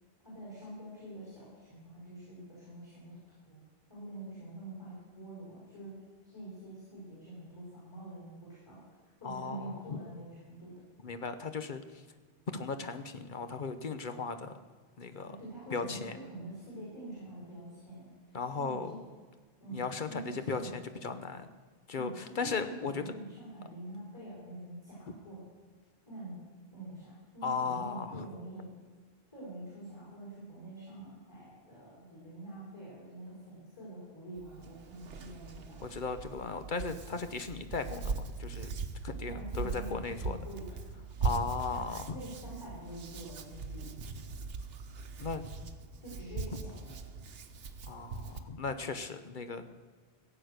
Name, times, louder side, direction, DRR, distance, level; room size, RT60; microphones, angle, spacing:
voice 1, 0.2-3.2 3.4-3.6 3.9-5.9 6.2-10.7 15.2-19.0 19.6-20.8 21.9-25.4 26.0-26.4 26.7-28.7 29.3-36.0 39.2-40.7 42.1-43.9 46.0-46.9, right 1 dB, 20° left, -8 dB, 5.2 m, -46 dB
voice 2, 9.2-10.0 11.0-12.0 12.5-14.5 15.0-15.4 15.7-16.2 18.3-18.9 19.7-21.5 21.9-23.0 27.4-28.3 35.8-38.7 39.0-40.4 41.2-42.2 45.2-45.5 47.9-49.7, left 4 dB, 50° left, 9 dB, 0.9 m, -37 dB
Hands, 34.4-48.4, right 4 dB, 60° right, 1.1 m, -40 dB
16.0 x 8.0 x 6.5 m, 1.5 s
omnidirectional pair, 1.1 m